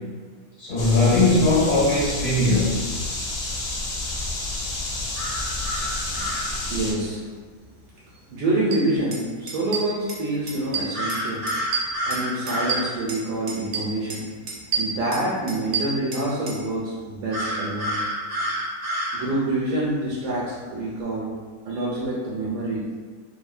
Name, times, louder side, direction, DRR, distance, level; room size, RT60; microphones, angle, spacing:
voice 1, 0.6-2.7, left 2 dB, 85° left, -12 dB, 1.6 m, -19 dB
sound 1, 0.8-6.9, left 2 dB, 65° left, 1.0 m, -30 dB
sound 2, 5.2-6.5 10.9-12.8 17.3-19.2, equal, 45° right, 0.4 m, -28 dB
voice 2, 6.1-6.4 6.7-7.3 8.3-11.5 12.1-18.0 19.1-21.4 21.6-22.8, right 1 dB, 80° right, -5 dB, 1.1 m, -27 dB
sound 3, 8.7-8.8 9.1-9.2 9.5-10.2 10.5-11.2 11.5-13.2 13.5-14.2 14.5-16.6, right 5 dB, 65° right, 0.8 m, -29 dB
3.4 x 2.0 x 2.4 m, 1.5 s
omnidirectional pair, 1.7 m